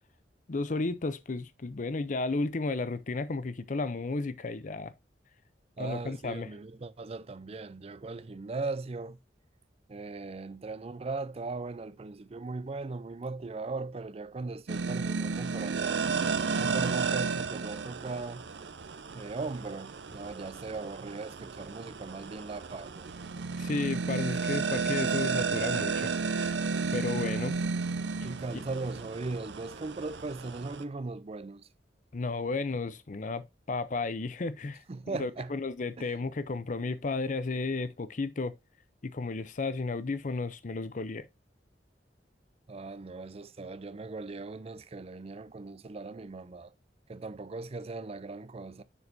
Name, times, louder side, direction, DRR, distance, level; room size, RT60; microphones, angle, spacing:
voice 1, 0.5-4.9 5.8-6.5 23.6-26.6 26.9-27.5 32.1-34.8 35.1-38.5 39.0-41.3, left 3 dB, 45° left, 0.6 m, -33 dB
voice 2, 5.8-9.2 9.9-16.0 16.6-18.5 19.1-23.1 27.1-27.5 28.2-31.7 34.9-35.5 36.0-36.2 42.7-46.7 47.1-48.8, right 3 dB, 35° right, 0.4 m, -38 dB
sound 1, 14.7-30.8, right 4 dB, 80° right, 0.7 m, -33 dB
6.9 x 6.4 x 2.7 m
head